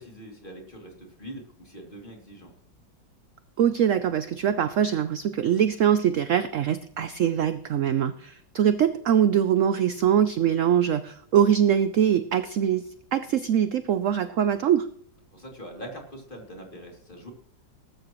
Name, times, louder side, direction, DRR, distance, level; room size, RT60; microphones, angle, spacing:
voice 1, 0.1-2.5 15.3-17.3, equal, 25° left, 1 dB, 3.0 m, -42 dB
voice 2, 3.6-14.9, right 9 dB, 70° right, 12 dB, 0.7 m, -23 dB
20.0 x 12.0 x 3.1 m, 0.65 s
omnidirectional pair, 2.0 m